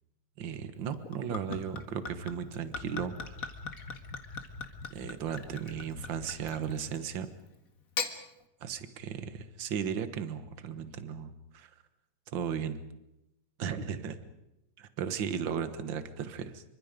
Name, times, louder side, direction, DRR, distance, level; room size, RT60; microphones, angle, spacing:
voice 1, 0.4-3.4 4.9-7.3 8.6-11.7 12.3-12.8 13.6-14.2 14.8-16.6, right 7 dB, 50° right, 11 dB, 1.7 m, -36 dB
Gurgling / Chink clink / Liquid, 0.9-7.1 7.8-8.2, left 4 dB, 35° left, 1.8 m, -40 dB
27.5 x 24.5 x 5.2 m, 0.91 s
omnidirectional pair, 3.4 m